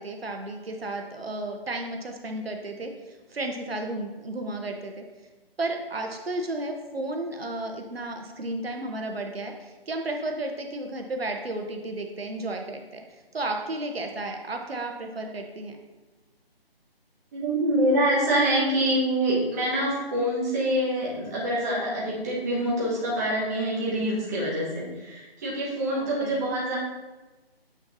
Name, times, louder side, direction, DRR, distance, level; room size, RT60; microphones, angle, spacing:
voice 1, 0.0-5.0 5.6-13.0 13.3-15.8 25.9-26.5, right 2 dB, 75° right, 3 dB, 1.0 m, -33 dB
voice 2, 17.3-26.8, right 1 dB, 15° right, -6 dB, 1.3 m, -25 dB
8.8 x 5.5 x 2.7 m, 1.2 s
figure-of-eight pair, 160°, 30 cm